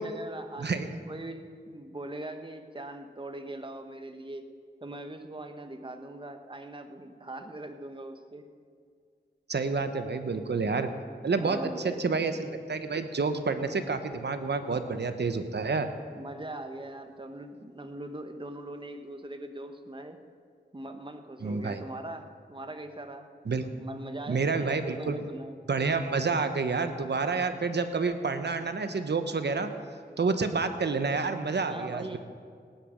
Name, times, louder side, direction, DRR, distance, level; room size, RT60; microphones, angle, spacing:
voice 1, 0.0-4.5 4.8-8.5 11.3-12.2 16.1-20.2 20.7-23.3 23.8-25.6 31.7-32.2, right 1 dB, 25° right, 6 dB, 1.1 m, -41 dB
voice 2, 9.5-10.9 11.2-15.9 21.4-21.8 23.5-23.7 24.3-25.2 25.7-29.7 30.2-32.2, right 4 dB, 65° right, 8 dB, 1.0 m, -29 dB
18.0 x 10.0 x 5.1 m, 2.1 s
wide cardioid pair, 75°, 19 cm